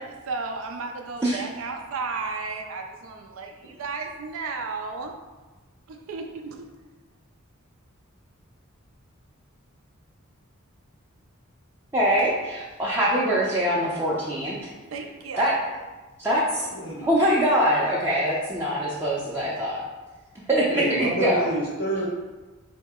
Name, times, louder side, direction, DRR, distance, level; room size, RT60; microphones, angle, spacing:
voice 1, 0.3-5.1 5.9-6.7 14.9-15.5, right 4 dB, 75° right, 3 dB, 0.4 m, -33 dB
voice 2, 11.9-14.7 15.4-15.6 16.2-16.7 17.0-19.8 20.5-21.5, equal, 10° right, -7 dB, 0.5 m, -23 dB
voice 3, 16.7-17.1 20.7-22.0, right 1 dB, 85° left, -3 dB, 1.2 m, -28 dB
4.0 x 2.7 x 3.5 m, 1.2 s
head